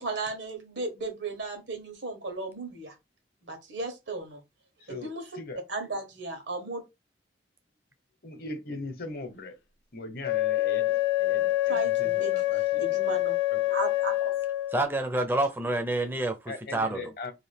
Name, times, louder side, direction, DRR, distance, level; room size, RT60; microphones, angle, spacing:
voice 1, 0.0-2.9 3.4-4.4 4.9-5.2 5.7-6.8 11.7-12.3 12.8-13.4 13.7-14.3, right 3 dB, 85° right, 1.2 m, -35 dB
voice 2, 4.8-5.6 8.2-9.5 9.9-13.2 13.5-13.7 16.5-17.3, left 2 dB, 55° left, 0.8 m, -40 dB
Wind instrument woodwind instrument, 10.2-14.9, left 17 dB, 75° left, 0.4 m, -26 dB
voice 3, 14.7-17.0, right 2 dB, 10° right, 0.4 m, -28 dB
2.8 x 2.5 x 3.3 m
head